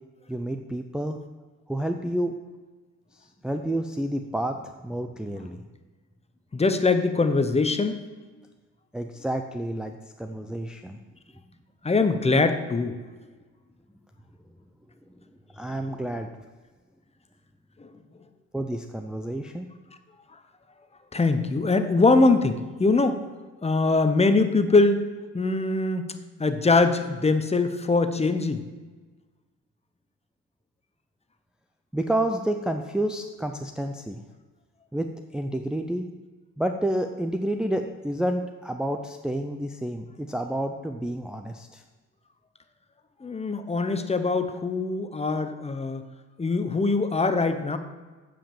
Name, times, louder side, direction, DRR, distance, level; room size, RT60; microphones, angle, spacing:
voice 1, 0.3-1.2 1.7-2.4 3.1-5.6 8.9-11.0 15.5-16.3 18.5-19.7 31.9-34.2 34.9-36.1 36.6-41.8, right 1 dB, 5° right, 4 dB, 0.5 m, -29 dB
voice 2, 6.5-8.0 11.8-13.0 17.8-17.9 21.1-23.2 23.6-25.0 25.3-26.1 26.4-28.6 43.2-46.0 46.4-47.8, left 3 dB, 20° left, 9 dB, 0.8 m, -22 dB
8.8 x 5.1 x 7.1 m, 1.3 s
cardioid pair, 90°, 30 cm